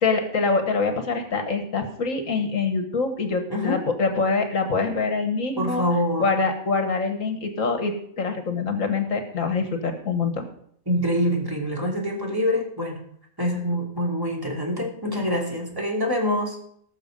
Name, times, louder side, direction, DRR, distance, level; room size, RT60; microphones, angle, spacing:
voice 1, 0.0-5.8 6.2-10.4, left 4 dB, 65° left, 7 dB, 1.6 m, -25 dB
voice 2, 5.6-6.3 10.9-13.0 13.4-16.6, equal, 15° right, -2 dB, 2.9 m, -25 dB
19.0 x 6.5 x 5.2 m, 0.66 s
omnidirectional pair, 1.5 m